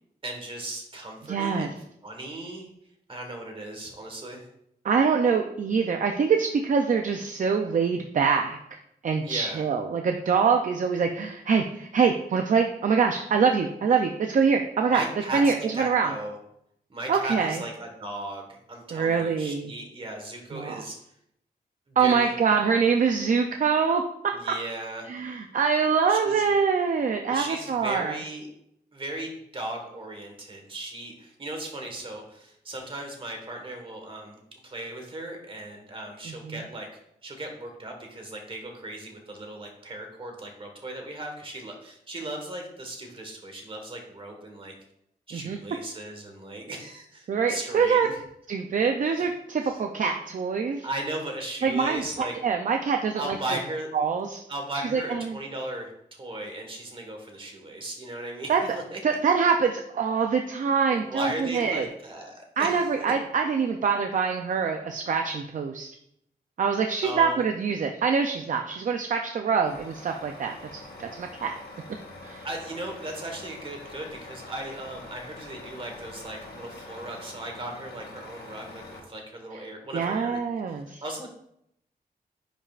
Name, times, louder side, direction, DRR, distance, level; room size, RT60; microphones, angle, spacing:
voice 1, 0.2-1.7 2.0-2.7 3.1-4.5 9.2-9.6 14.9-16.4 16.9-21.0 21.9-22.3 24.3-25.1 26.1-26.5 27.3-28.5 28.9-36.9 37.2-44.7 45.3-48.2 49.1-49.3 49.6-49.8 50.8-52.3 53.1-53.9 54.5-59.0 60.9-63.2 67.0-67.4 72.4-80.4 81.0-81.3, right 1 dB, 35° right, 2 dB, 1.5 m, -37 dB
voice 2, 1.3-1.7 4.8-8.6 9.0-15.0 15.3-16.1 17.1-17.6 18.9-19.7 20.5-20.8 22.0-24.0 25.1-28.2 45.3-45.6 47.3-48.1 48.5-50.9 51.6-52.0 52.4-53.6 53.9-54.4 54.9-55.4 58.5-58.6 59.0-61.9 62.6-65.9 66.6-71.5 72.2-72.5 79.9-81.0, right 5 dB, 55° right, 4 dB, 0.5 m, -24 dB
Truck, 69.6-79.0, left 2 dB, 90° left, 1.4 m, -45 dB
9.9 x 5.5 x 2.5 m, 0.76 s
wide cardioid pair, 165°, 16 cm